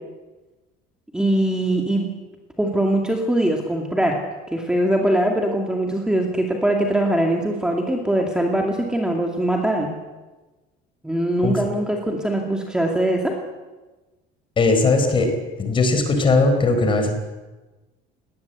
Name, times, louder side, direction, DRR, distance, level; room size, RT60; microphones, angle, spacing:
voice 1, 1.1-2.1 2.6-4.2 4.5-9.9 11.0-13.4, right 1 dB, 5° right, 1 dB, 2.3 m, -22 dB
voice 2, 14.6-15.3 15.6-17.1, left 3 dB, 25° left, 7 dB, 4.2 m, -18 dB
21.0 x 19.0 x 8.2 m, 1.2 s
cardioid pair, 150°, 19 cm